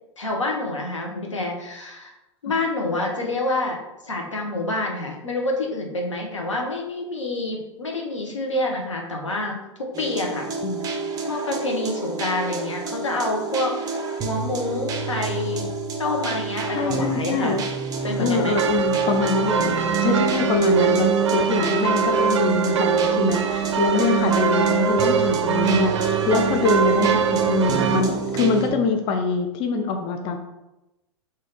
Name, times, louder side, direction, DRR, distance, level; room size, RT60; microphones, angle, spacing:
voice 1, 0.2-2.1 2.4-3.8 4.0-10.5 10.9-11.0 11.3-15.7 16.0-17.6 18.0-18.6 21.5-21.7, left 2 dB, 85° left, 0 dB, 0.9 m, -27 dB
sound 1, 9.9-28.7, right 6 dB, 25° right, 0.5 m, -27 dB
voice 2, 16.8-17.6 18.2-30.4, left 4 dB, 35° left, 5 dB, 0.4 m, -24 dB
sound 2, 18.4-28.0, right 5 dB, 75° right, 0.4 m, -23 dB
3.3 x 2.6 x 3.9 m, 0.95 s
figure-of-eight pair, 95°, 15 cm